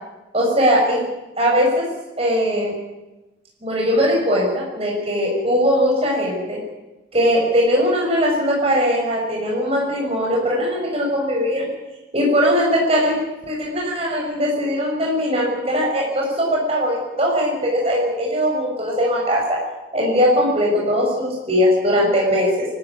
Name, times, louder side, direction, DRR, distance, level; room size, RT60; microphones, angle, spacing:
voice 1, 0.3-1.0 1.4-1.9 2.2-2.7 3.6-6.6 7.1-11.7 12.1-13.2 13.5-19.6 19.9-22.7, equal, 30° right, -2 dB, 6.5 m, -20 dB
25.5 x 14.0 x 9.7 m, 1.0 s
head